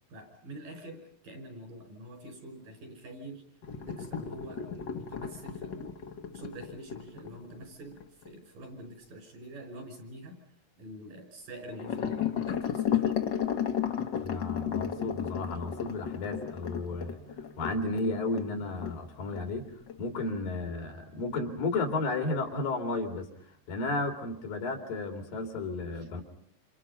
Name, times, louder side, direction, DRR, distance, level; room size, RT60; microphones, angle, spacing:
voice 1, 0.1-3.4 3.8-6.0 6.3-10.4 10.8-13.1, right 1 dB, 75° right, 6 dB, 7.2 m, -46 dB
sound 1, 3.6-8.3 11.7-18.5 18.8-19.0 19.3-19.4 19.9-20.0, left 9 dB, 50° left, 1.3 m, -33 dB
voice 2, 14.2-26.2, left 2 dB, 80° left, 5 dB, 4.5 m, -33 dB
sound 2, 14.5-24.3, right 5 dB, 45° right, 2.0 m, -56 dB
28.0 x 28.0 x 5.7 m, 0.63 s
omnidirectional pair, 4.0 m